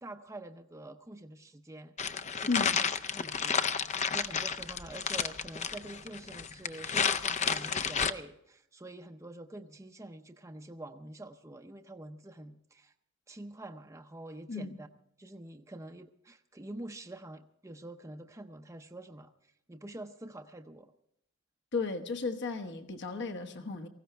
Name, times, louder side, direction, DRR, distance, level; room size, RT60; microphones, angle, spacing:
voice 1, 0.0-1.9 2.4-12.9 13.3-14.9 15.2-20.9, right 1 dB, 15° right, 0.6 m, -47 dB
sound 1, 2.0-8.1, left 6 dB, 35° left, 0.5 m, -31 dB
voice 2, 21.7-23.9, left 4 dB, 55° left, 1.2 m, -34 dB
19.0 x 16.0 x 3.4 m
head